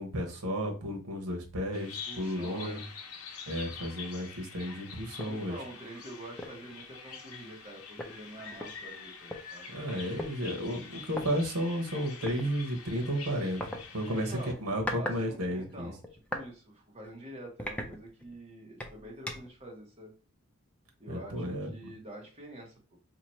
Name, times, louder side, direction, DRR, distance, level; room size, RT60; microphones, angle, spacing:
voice 1, 0.0-2.8 3.5-5.6 9.7-15.9 21.1-21.7, equal, 80° right, 3 dB, 1.0 m, -33 dB
Bird vocalization bird call bird song, 1.7-14.5, left 5 dB, 70° left, 0.7 m, -46 dB
voice 2, 2.0-2.9 5.2-10.0 14.0-20.1 21.0-23.0, right 1 dB, 25° right, -1 dB, 1.2 m, -47 dB
sound 1, 5.2-5.4 5.8-6.0 6.4-6.7 7.6-7.7 8.0-9.4 10.2-10.3 11.1-11.3 12.3-12.4 13.6-13.8 14.5-15.2 15.5-16.5 17.0-17.1 17.6-18.4 18.8-19.6, left 1 dB, 5° left, 0.4 m, -38 dB
2.9 x 2.4 x 4.3 m, 0.35 s
head